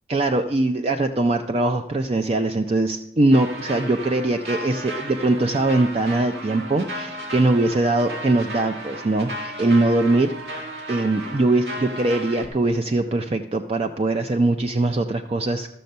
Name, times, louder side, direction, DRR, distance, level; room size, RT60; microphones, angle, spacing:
voice 1, 0.1-10.3 10.9-15.7, right 2 dB, 35° right, 7 dB, 0.4 m, -21 dB
sound 1, 3.3-12.5, right 1 dB, 70° right, 2.2 m, -34 dB
13.5 x 6.7 x 5.3 m, 0.81 s
head